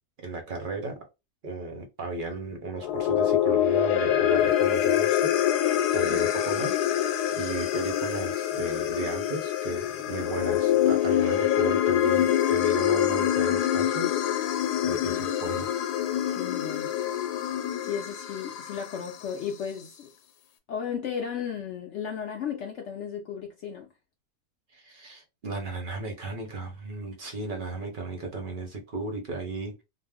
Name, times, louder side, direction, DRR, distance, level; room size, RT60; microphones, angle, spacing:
voice 1, 0.2-1.0 1.4-5.3 5.6-14.5 14.8-15.7 24.7-29.8, right 3 dB, 55° right, 0.6 m, -35 dB
sound 1, 2.7-19.2, left 11 dB, 85° left, 1.1 m, -25 dB
voice 2, 16.3-16.9 17.8-20.1 20.7-23.9, left 7 dB, 70° left, 0.7 m, -34 dB
2.6 x 2.0 x 3.4 m
omnidirectional pair, 1.7 m